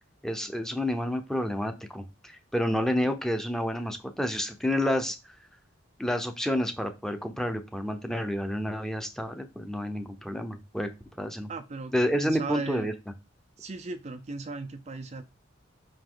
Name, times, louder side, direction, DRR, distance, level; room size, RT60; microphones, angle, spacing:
voice 1, 0.2-5.2 6.0-10.9 11.2-11.5 11.9-12.9, equal, ahead, 6 dB, 0.7 m, -29 dB
voice 2, 11.5-12.9 13.6-15.2, right 3 dB, 35° right, 7 dB, 0.4 m, -37 dB
5.5 x 5.0 x 3.9 m, 0.26 s
head